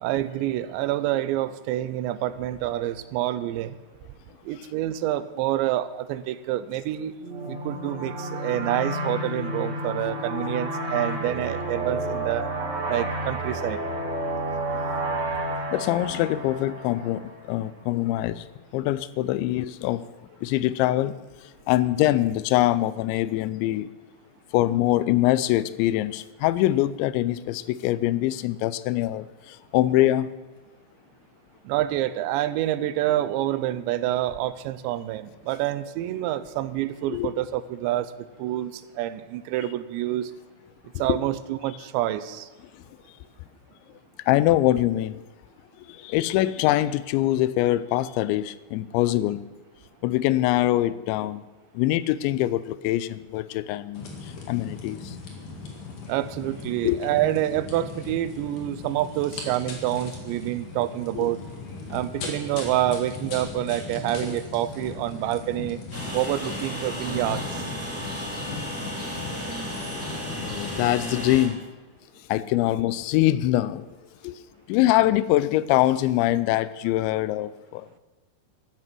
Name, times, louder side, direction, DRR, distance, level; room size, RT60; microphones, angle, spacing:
voice 1, 0.0-3.8 4.5-7.2 7.5-12.5 12.9-13.8 31.7-38.1 38.4-40.3 41.0-42.5 56.1-61.4 61.9-65.8 66.1-67.6, right 13 dB, 85° right, 13 dB, 2.8 m, -27 dB
sound 1, 7.2-17.6, right 1 dB, 50° right, 1.2 m, -30 dB
voice 2, 15.7-17.2 17.5-18.5 18.7-20.1 20.4-21.1 21.7-23.9 24.5-30.3 37.1-37.3 41.1-41.2 44.3-45.2 45.9-49.4 50.0-51.4 51.7-54.0 54.5-55.1 56.8-57.0 61.2-61.3 70.4-71.6 72.3-73.9 74.2-74.3 74.7-78.0, left 15 dB, 85° left, 16 dB, 2.8 m, -23 dB
sound 2, 53.9-70.9, left 4 dB, 55° left, 2.9 m, -38 dB
Train, 65.9-71.5, equal, 10° right, 0.7 m, -34 dB
13.5 x 11.0 x 6.1 m, 1.2 s
omnidirectional pair, 5.2 m